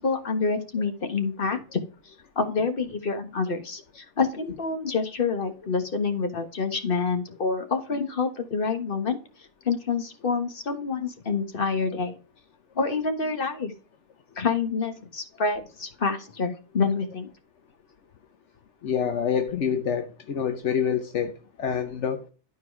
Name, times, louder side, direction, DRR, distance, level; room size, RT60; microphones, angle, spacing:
voice 1, 0.0-1.8 2.3-9.2 9.6-12.1 12.7-13.7 14.4-17.3, left 4 dB, 50° left, 1.7 m, -27 dB
voice 2, 18.8-21.3 21.6-22.2, left 7 dB, 75° left, 1.2 m, -26 dB
12.0 x 4.6 x 4.6 m
omnidirectional pair, 1.2 m